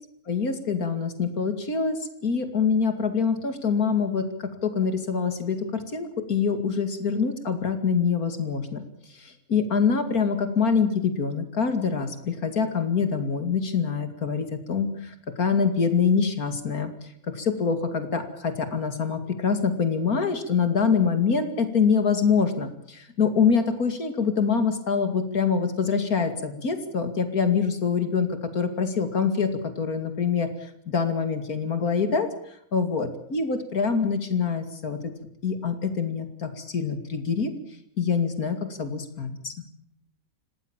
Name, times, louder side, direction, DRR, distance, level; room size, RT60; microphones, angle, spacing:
voice 1, 0.3-8.8 9.1-16.9 17.3-29.5 29.8-32.3 32.7-35.1 35.4-37.5 38.0-39.5, left 5 dB, 90° left, 8 dB, 2.9 m, -25 dB
28.0 x 18.0 x 7.3 m, 0.70 s
omnidirectional pair, 1.5 m